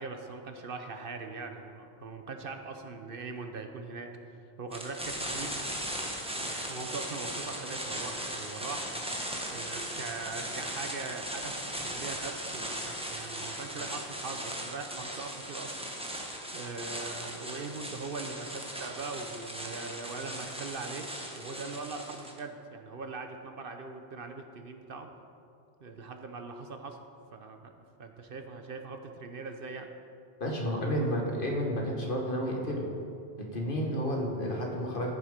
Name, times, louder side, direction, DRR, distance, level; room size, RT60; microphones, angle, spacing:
voice 1, 0.0-4.1 4.6-5.5 6.7-8.9 9.5-21.1 21.3-25.1 25.8-27.0 27.3-27.7 28.0-29.9, right 4 dB, 60° right, 6 dB, 1.0 m, -41 dB
sound 1, 4.7-22.4, equal, 5° right, 1.2 m, -38 dB
voice 2, 30.4-32.8 33.4-35.1, equal, 55° left, -1 dB, 1.9 m, -31 dB
14.0 x 7.4 x 5.1 m, 2.5 s
omnidirectional pair, 1.1 m